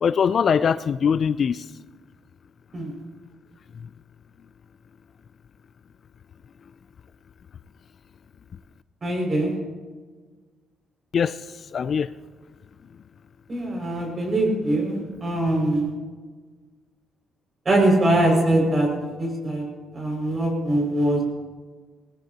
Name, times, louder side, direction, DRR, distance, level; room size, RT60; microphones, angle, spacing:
voice 1, 0.0-1.6 11.1-11.4 11.7-12.1, left 7 dB, 55° left, 14 dB, 0.4 m, -21 dB
voice 2, 9.0-9.6 13.5-15.9 17.6-18.9 19.2-19.6 19.9-21.2, right 1 dB, 35° right, 0 dB, 6.0 m, -22 dB
20.0 x 19.0 x 2.9 m, 1.4 s
cardioid pair, 90°, 0 cm